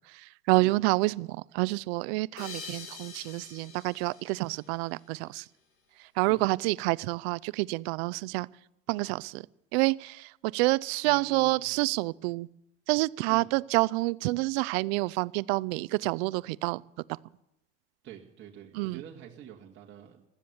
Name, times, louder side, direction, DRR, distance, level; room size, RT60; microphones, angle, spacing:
voice 1, 0.1-1.3 1.5-5.5 6.2-8.5 8.9-9.4 9.7-12.5 12.9-16.8 18.7-19.0, right 23 dB, 80° right, 0.5 m, -28 dB
sound 1, 2.4-5.4, left 5 dB, 45° left, 2.5 m, -46 dB
voice 2, 11.0-11.8 13.3-13.5 18.0-20.2, right 10 dB, 40° right, 2.1 m, -46 dB
16.0 x 12.0 x 7.1 m
supercardioid pair, 130°, 30 cm